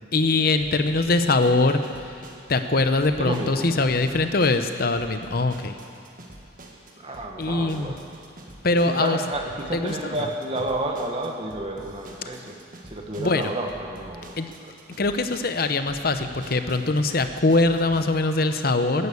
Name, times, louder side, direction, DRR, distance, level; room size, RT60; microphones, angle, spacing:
voice 1, 0.1-1.8 2.5-5.8 7.4-7.9 8.6-9.2 9.7-10.2 13.2-13.5 14.4-14.5 15.0-19.1, left 2 dB, 50° left, 8 dB, 0.8 m, -22 dB
sound 1, 0.6-18.0, right 1 dB, 45° right, 1.6 m, -46 dB
voice 2, 3.2-3.7 7.0-8.0 8.8-12.6 12.8-14.4 14.6-14.7, right 1 dB, 30° right, 1 dB, 1.5 m, -30 dB
15.0 x 11.0 x 7.1 m, 2.6 s
head